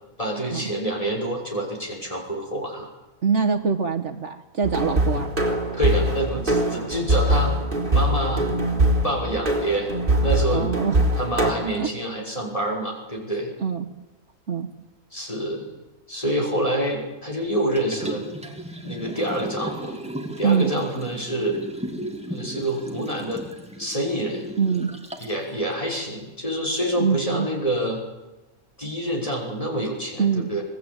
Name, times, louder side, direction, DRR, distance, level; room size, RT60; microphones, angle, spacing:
voice 1, 0.2-2.9 5.7-7.6 7.9-8.5 9.0-9.9 10.2-10.7 11.1-13.5 15.1-15.7 16.1-18.2 18.8-19.9 20.4-21.6 22.3-23.5 23.8-24.5 25.2-28.0 28.8-30.6, right 1 dB, 25° left, -1 dB, 6.2 m, -27 dB
voice 2, 3.2-5.3 10.5-11.1 11.7-11.9 13.6-13.9 14.5-14.7 20.4-20.7 24.6-24.9 27.0-27.5 30.2-30.5, right 6 dB, 55° right, 5 dB, 1.6 m, -24 dB
sound 1, 4.6-11.5, right 1 dB, 35° right, 4.0 m, -22 dB
Liquid, 17.8-25.4 25.9-26.0, equal, 5° right, 2.7 m, -35 dB
26.0 x 19.5 x 9.0 m, 1.1 s
omnidirectional pair, 1.5 m